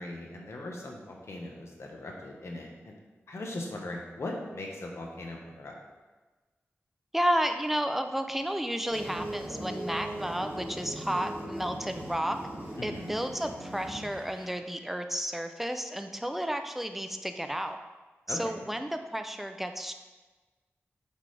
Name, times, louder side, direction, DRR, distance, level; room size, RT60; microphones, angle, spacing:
voice 1, 0.0-2.9 3.3-5.7 12.8-13.1 18.3-18.7, left 2 dB, 70° left, 0 dB, 1.1 m, -39 dB
voice 2, 7.1-12.4 12.8-17.8 18.3-19.9, equal, 5° right, 6 dB, 0.4 m, -32 dB
sound 1, 8.9-14.4, right 1 dB, 45° right, 1.6 m, -39 dB
8.4 x 3.8 x 3.3 m, 1.3 s
wide cardioid pair, 105°, 5 cm